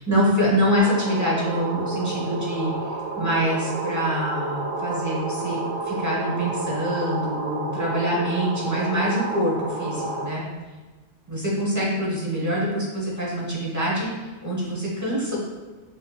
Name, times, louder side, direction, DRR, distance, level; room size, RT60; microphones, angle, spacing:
voice 1, 0.0-2.9 3.2-10.4 11.3-15.4, equal, 15° right, -5 dB, 0.8 m, -25 dB
sound 1, 0.8-10.3, right 3 dB, 75° right, 1.0 m, -30 dB
5.4 x 2.9 x 2.2 m, 1.3 s
omnidirectional pair, 1.3 m